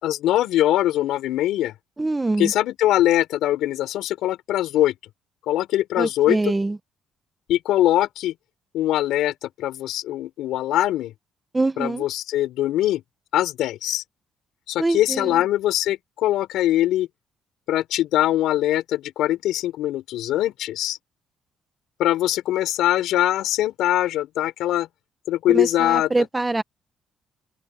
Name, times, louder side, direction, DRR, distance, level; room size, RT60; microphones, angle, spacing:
voice 1, 0.0-1.7 2.4-4.9 5.4-6.5 7.5-8.3 8.7-11.1 11.8-13.0 13.3-14.0 14.7-17.1 17.7-21.0 22.0-24.9 25.3-26.3, left 14 dB, 85° left, 6.2 m, -22 dB
voice 2, 2.0-2.5 6.0-6.8 11.5-12.0 14.8-15.4 25.5-26.6, right 2 dB, 10° right, 1.2 m, -24 dB
cardioid pair, 165°, 0 cm